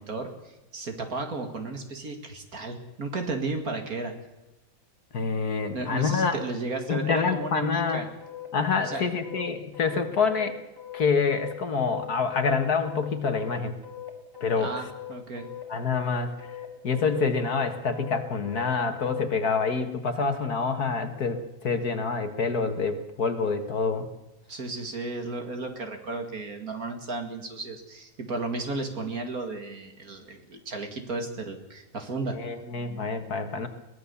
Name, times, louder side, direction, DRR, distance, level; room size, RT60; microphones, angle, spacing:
voice 1, 0.0-4.1 5.7-8.1 8.8-9.1 14.6-15.5 24.5-32.4, right 3 dB, 50° right, 5 dB, 2.6 m, -34 dB
voice 2, 5.1-6.4 6.9-8.1 8.5-10.6 10.9-13.7 14.4-14.7 15.7-24.1 32.3-33.7, left 5 dB, 55° left, 7 dB, 1.9 m, -27 dB
sound 1, 7.2-19.8, left 11 dB, 10° left, 2.7 m, -41 dB
22.5 x 17.5 x 7.1 m, 0.97 s
omnidirectional pair, 2.0 m